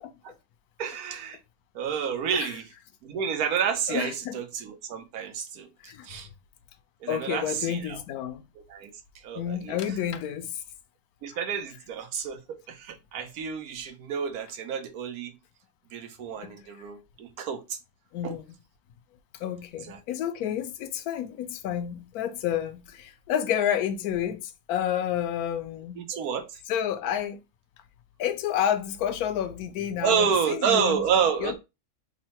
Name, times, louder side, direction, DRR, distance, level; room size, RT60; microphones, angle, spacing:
voice 1, 0.8-1.4 1.7-2.7 3.0-6.3 7.0-8.0 8.6-8.9 9.2-9.8 11.2-15.4 15.9-17.8 18.2-18.4 19.9-20.0 26.0-26.6 30.0-31.6, right 7 dB, 85° right, 1.2 m, -29 dB
voice 2, 3.9-4.4 5.8-6.1 7.1-8.4 9.4-10.6 16.4-16.5 18.1-18.4 19.4-26.0 26.7-27.4 28.2-31.0 31.4-31.6, left 10 dB, 85° left, 1.1 m, -30 dB
3.6 x 2.1 x 4.2 m
omnidirectional pair, 1.5 m